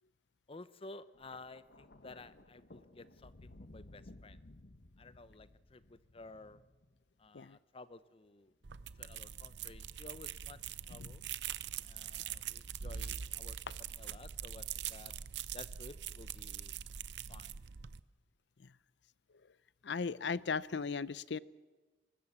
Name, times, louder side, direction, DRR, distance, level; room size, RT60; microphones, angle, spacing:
voice 1, 0.5-4.4 5.0-6.6 7.2-8.5 9.0-10.6 10.9-11.2 11.8-15.1 15.5-16.8 17.3-17.6, left 3 dB, 30° left, 14 dB, 0.7 m, -53 dB
Thunder, 1.1-7.5 8.5-8.7, left 1 dB, 65° left, 1.1 m, -58 dB
sound 1, 8.6-18.0, right 9 dB, 80° right, 0.7 m, -43 dB
voice 2, 19.8-21.4, left 5 dB, 80° left, 18 dB, 0.6 m, -36 dB
24.0 x 19.5 x 7.3 m, 1.2 s
head